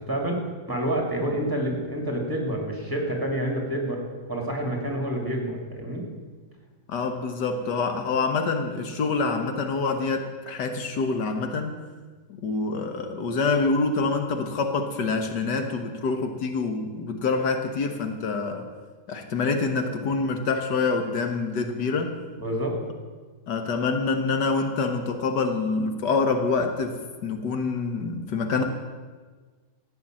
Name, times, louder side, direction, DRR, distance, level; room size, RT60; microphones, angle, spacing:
voice 1, 0.0-4.0 4.3-6.1 22.4-22.7, right 1 dB, 10° right, 0 dB, 2.7 m, -28 dB
voice 2, 6.9-11.8 12.4-18.7 19.1-22.1 23.5-28.6, left 4 dB, 75° left, 6 dB, 1.7 m, -26 dB
14.5 x 8.8 x 7.6 m, 1.4 s
omnidirectional pair, 1.9 m